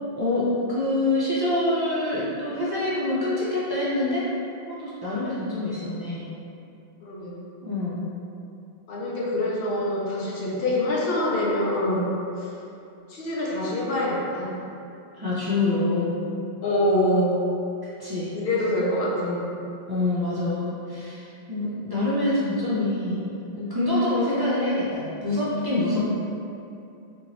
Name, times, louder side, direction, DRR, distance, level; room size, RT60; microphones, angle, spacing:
voice 1, 0.2-4.3 4.7-6.3 7.6-8.1 15.1-16.2 18.0-18.3 19.9-23.2 23.5-26.0, left 2 dB, 40° right, -10 dB, 0.3 m, -26 dB
voice 2, 7.0-7.4 8.9-12.1 12.4-12.5 13.1-14.5 16.6-17.4 18.3-19.5, left 1 dB, 70° left, -4 dB, 0.7 m, -25 dB
2.9 x 2.6 x 2.9 m, 2.6 s
omnidirectional pair, 1.1 m